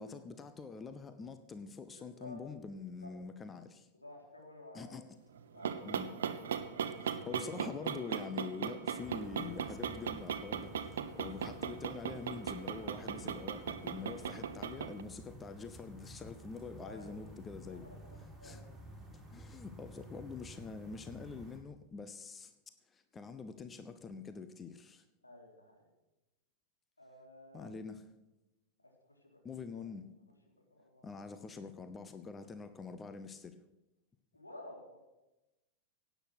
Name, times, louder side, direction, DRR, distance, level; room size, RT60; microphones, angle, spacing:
voice 1, 0.0-3.9 4.7-5.0 5.8-6.1 7.3-17.9 18.4-18.6 19.1-22.5 22.9-25.0 27.5-28.0 29.4-30.1 31.0-33.6, left 5 dB, 20° left, 10 dB, 0.9 m, -45 dB
voice 2, 1.9-2.4 3.0-3.1 3.9-5.0 5.5-7.4 16.8-17.2 17.7-18.7 25.2-25.9 27.0-27.7 28.8-29.4 29.7-29.8 30.5-31.1 34.3-35.0, left 1 dB, 85° left, -1 dB, 3.7 m, -54 dB
sound 1, 5.4-15.0, right 8 dB, 60° right, 1.0 m, -38 dB
sound 2, 9.0-21.6, right 1 dB, 10° right, 5.7 m, -52 dB
17.0 x 9.2 x 6.2 m, 0.97 s
figure-of-eight pair, 90°, 0 cm